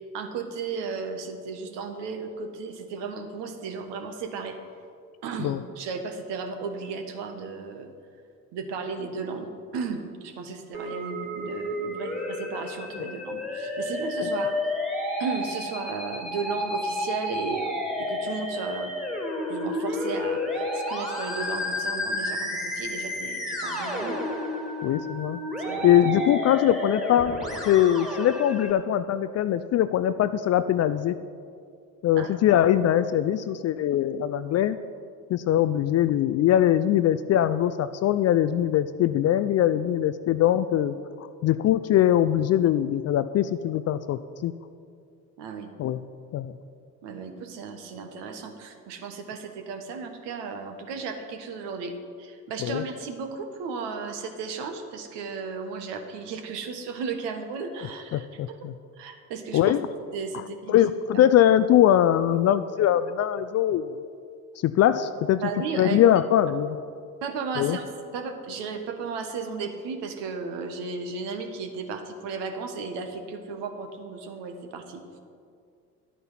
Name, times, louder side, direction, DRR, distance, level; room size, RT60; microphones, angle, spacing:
voice 1, 0.1-4.6 5.2-7.9 8.5-14.5 15.2-18.9 19.5-24.2 25.7-26.0 32.1-32.3 45.4-45.7 47.0-58.6 59.0-59.8 60.1-60.9 61.1-61.3 65.3-66.0 67.2-67.9 68.1-75.2, right 5 dB, 60° right, 6 dB, 1.5 m, -35 dB
Musical instrument, 10.7-28.7, left 1 dB, ahead, 2.3 m, -31 dB
voice 2, 24.8-25.4 25.8-27.4 27.6-31.2 32.0-34.8 35.3-44.5 45.8-46.0 46.3-46.5 52.6-52.8 58.1-58.7 59.5-59.8 60.7-63.9 64.6-65.4 65.8-66.8 67.6-67.8, left 11 dB, 35° left, 13 dB, 0.4 m, -22 dB
11.0 x 9.2 x 5.7 m, 2.3 s
hypercardioid pair, 60°, 47 cm